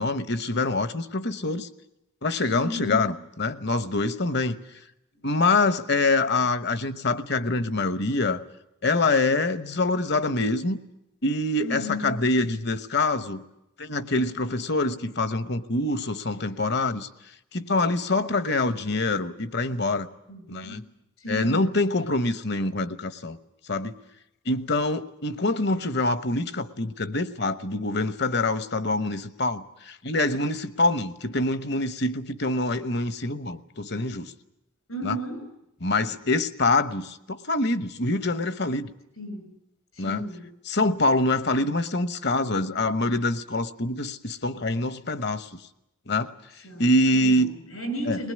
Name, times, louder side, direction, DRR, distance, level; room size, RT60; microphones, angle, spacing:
voice 1, 0.0-1.7 2.2-4.6 5.2-8.4 8.8-10.8 11.2-13.4 13.8-17.1 17.5-20.1 20.5-20.8 21.3-23.4 23.7-24.0 24.5-34.3 35.0-35.2 35.8-38.9 40.0-40.2 40.7-45.6 46.1-46.3 46.8-47.5 48.1-48.2, left 2 dB, 50° left, 13 dB, 1.0 m, -25 dB
voice 2, 2.5-3.1 11.6-12.3 20.3-20.8 21.2-21.7 34.9-35.4 39.2-39.5 39.9-40.5 46.6-48.3, equal, 90° left, 7 dB, 7.5 m, -34 dB
21.5 x 19.5 x 9.6 m, 0.84 s
head